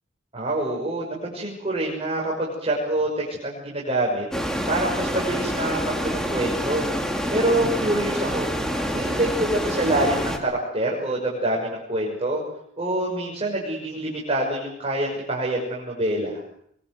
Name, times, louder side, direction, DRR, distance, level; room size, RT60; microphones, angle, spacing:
voice 1, 0.3-6.8 7.3-8.5 8.9-12.4 12.8-16.4, right 1 dB, 30° right, -3 dB, 6.3 m, -26 dB
sound 1, 4.3-10.4, equal, 5° left, 3.1 m, -27 dB
24.0 x 23.0 x 7.9 m, 0.71 s
head